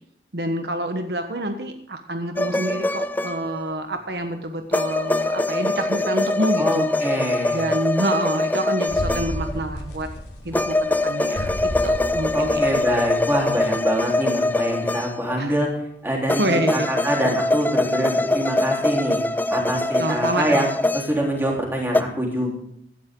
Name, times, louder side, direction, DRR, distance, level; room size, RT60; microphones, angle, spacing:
voice 1, 0.3-6.9 7.5-10.1 10.4-12.8 15.4-15.5 16.3-16.9 20.0-20.7, right 1 dB, 70° right, 6 dB, 1.3 m, -27 dB
sound 1, 2.4-3.7 4.7-9.6 10.5-15.5 16.3-21.6 21.9-22.0, left 2 dB, 10° left, 0.4 m, -23 dB
voice 2, 6.6-7.6 12.3-15.7 16.0-19.2 19.5-20.7 20.9-22.5, right 1 dB, 10° right, -1 dB, 3.8 m, -25 dB
sound 2, 8.9-13.7, equal, 85° left, 3.1 m, -33 dB
17.5 x 12.5 x 3.8 m, 0.71 s
head